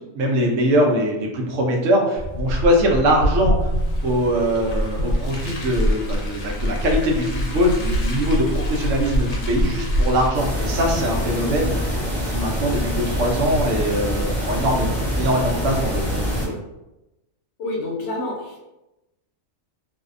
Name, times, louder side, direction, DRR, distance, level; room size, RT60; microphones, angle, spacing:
voice 1, 0.1-3.7 4.0-11.9 12.2-14.9 15.2-16.6, equal, 75° right, 0 dB, 0.9 m, -22 dB
Car, 2.2-10.3, equal, 90° left, 1.0 m, -24 dB
sound 1, 10.3-16.5, equal, ahead, 0.5 m, -25 dB
voice 2, 17.6-18.6, left 2 dB, 65° left, -1 dB, 0.8 m, -28 dB
2.6 x 2.1 x 2.4 m, 0.96 s
omnidirectional pair, 1.4 m